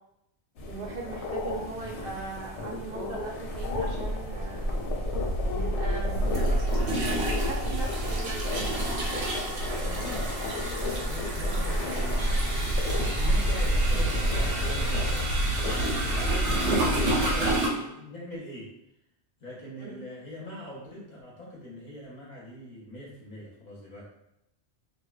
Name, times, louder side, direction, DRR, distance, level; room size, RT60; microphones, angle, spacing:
sound 1, 0.6-17.6, equal, 90° left, 0.9 m, -29 dB
voice 1, 0.7-4.7 5.5-6.4 7.0-8.7 16.3-16.6 19.8-20.0, right 3 dB, 60° right, -1 dB, 0.7 m, -39 dB
sound 2, 4.7-4.8 6.1-17.7, right 2 dB, 85° right, 1.0 m, -31 dB
voice 2, 9.8-15.3 16.0-18.7 19.4-24.0, left 1 dB, 50° left, -5 dB, 0.6 m, -42 dB
2.7 x 2.1 x 2.3 m, 0.85 s
omnidirectional pair, 1.2 m